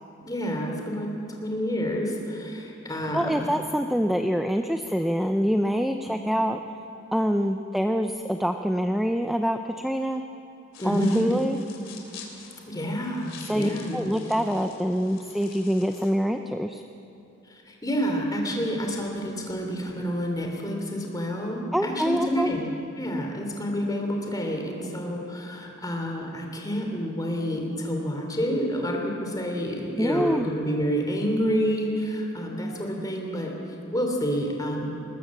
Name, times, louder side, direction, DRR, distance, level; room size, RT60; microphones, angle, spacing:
voice 1, 0.2-1.1 1.4-3.5 6.3-6.5 10.8-11.3 12.7-14.0 17.5-33.5 33.9-34.9, equal, 20° left, 1 dB, 3.2 m, -29 dB
voice 2, 3.1-6.6 7.1-10.2 10.8-11.6 13.5-16.8 21.7-22.5 30.0-30.5, equal, ahead, 6 dB, 0.5 m, -25 dB
sound 1, 10.7-16.1, left 6 dB, 70° left, 3.3 m, -47 dB
20.5 x 20.0 x 7.3 m, 2.8 s
head